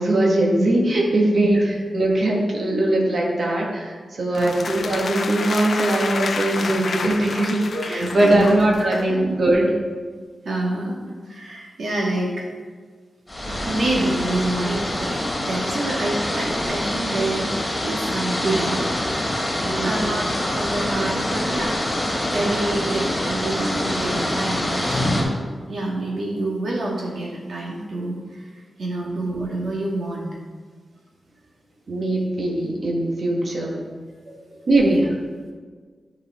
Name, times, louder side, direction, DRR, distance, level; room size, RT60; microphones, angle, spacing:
voice 1, 0.0-9.7 19.6-20.0 31.9-33.8 34.7-35.0, right 1 dB, 60° right, -1 dB, 1.6 m, -20 dB
sound 1, 4.3-9.2, left 4 dB, 65° left, 0.6 m, -29 dB
voice 2, 7.9-8.5 9.1-9.3 10.4-11.0 11.3-12.4 13.7-18.8 19.8-21.7 22.3-25.3 25.7-28.5 28.8-30.3 34.2-35.0, right 2 dB, 75° right, -3 dB, 1.9 m, -27 dB
sound 2, 13.3-25.2, left 1 dB, 20° left, 2.0 m, -25 dB
12.0 x 5.0 x 3.7 m, 1.5 s
wide cardioid pair, 105°, 0 cm